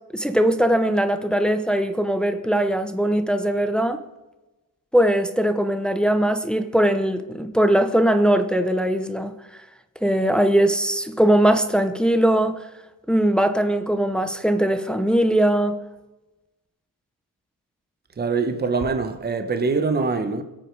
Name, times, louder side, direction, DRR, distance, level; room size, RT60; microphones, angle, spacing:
voice 1, 0.1-4.0 4.9-9.4 10.0-12.6 13.1-15.8, right 1 dB, ahead, 0.7 m, -20 dB
voice 2, 18.2-20.4, right 4 dB, 25° right, 1.2 m, -23 dB
23.5 x 8.3 x 4.7 m
wide cardioid pair, 150°, 36 cm